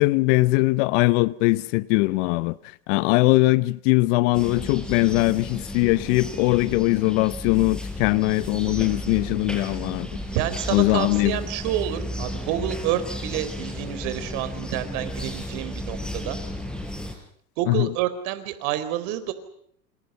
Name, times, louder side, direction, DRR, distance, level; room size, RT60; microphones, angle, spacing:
voice 1, 0.0-2.6 2.9-10.1 10.7-11.4 17.7-17.9, left 22 dB, 45° left, 1.0 m, -21 dB
sound 1, 4.3-17.1, equal, ahead, 5.0 m, -33 dB
voice 2, 10.3-16.4 17.6-19.3, right 12 dB, 50° right, 4.4 m, -28 dB
28.0 x 27.0 x 5.6 m
hypercardioid pair, 120°, 50 cm